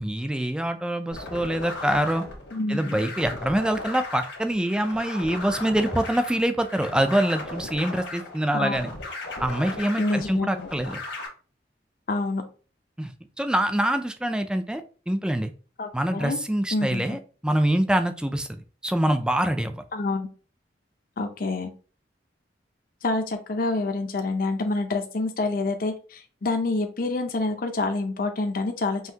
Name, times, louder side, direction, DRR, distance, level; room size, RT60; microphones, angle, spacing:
voice 1, 0.0-2.3 2.7-8.9 9.4-11.0 13.0-15.5 15.9-19.8, right 1 dB, 5° right, 8 dB, 0.3 m, -25 dB
sound 1, 1.1-11.3, left 2 dB, 75° left, 1.3 m, -37 dB
voice 2, 2.5-3.0 8.5-8.8 10.0-10.7 12.1-12.4 15.8-16.4 16.7-17.0 19.9-20.3 21.2-21.7 23.0-29.1, left 2 dB, 50° left, 6 dB, 0.6 m, -27 dB
5.6 x 2.6 x 2.7 m, 0.38 s
head